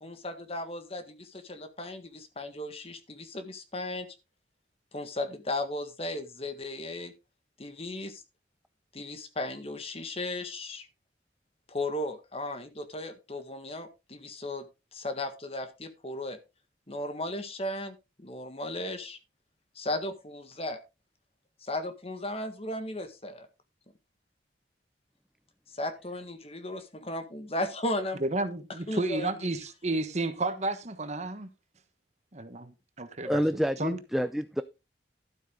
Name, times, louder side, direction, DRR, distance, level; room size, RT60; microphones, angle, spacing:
voice 1, 0.0-4.1 4.9-7.1 7.6-8.2 8.9-10.9 11.7-14.7 14.9-16.4 16.9-19.2 19.8-20.8 21.6-23.5 25.7-28.2 28.9-29.5, left 1 dB, 35° left, 1.7 m, -36 dB
voice 2, 28.2-31.5 32.3-33.4 33.8-34.0, right 2 dB, 40° right, 1.3 m, -32 dB
voice 3, 33.2-34.6, equal, ahead, 0.4 m, -28 dB
12.0 x 7.9 x 3.8 m
head